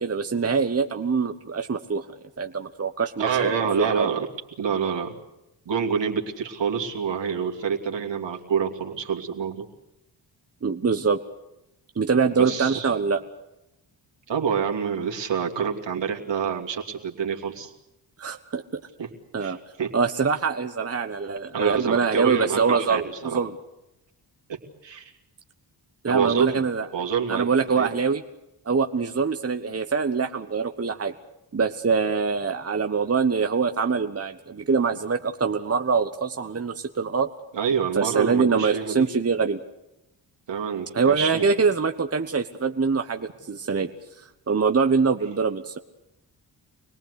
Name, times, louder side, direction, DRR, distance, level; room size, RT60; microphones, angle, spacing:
voice 1, 0.0-2.1 2.4-3.5 3.8-4.1 10.6-11.2 12.0-13.2 18.2-18.8 19.3-19.6 19.9-23.5 26.0-26.9 27.3-28.2 28.6-31.1 31.5-37.3 37.9-39.6 40.9-43.9 44.5-45.8, right 5 dB, 30° right, 6 dB, 1.3 m, -24 dB
voice 2, 3.2-4.3 4.6-5.2 5.7-9.7 12.4-12.9 14.3-17.7 19.0-19.1 19.4-19.9 21.5-23.4 24.5-25.1 26.0-26.6 26.9-27.5 27.8-27.9 37.5-39.1 40.5-41.4, right 7 dB, 70° right, 1 dB, 2.8 m, -27 dB
25.5 x 18.5 x 8.3 m, 0.89 s
supercardioid pair, 50°, 46 cm